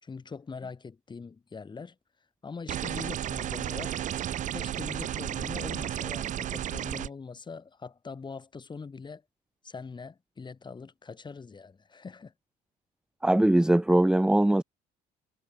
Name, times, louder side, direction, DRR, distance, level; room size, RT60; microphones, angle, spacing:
voice 1, 0.0-1.9 2.4-4.0 4.5-9.2 9.6-12.3, left 5 dB, 25° left, 4.5 m, -42 dB
sound 1, 2.7-7.1, right 11 dB, 50° right, 0.6 m, -33 dB
voice 2, 13.2-14.6, right 1 dB, 5° right, 0.8 m, -21 dB
cardioid pair, 110°, 17 cm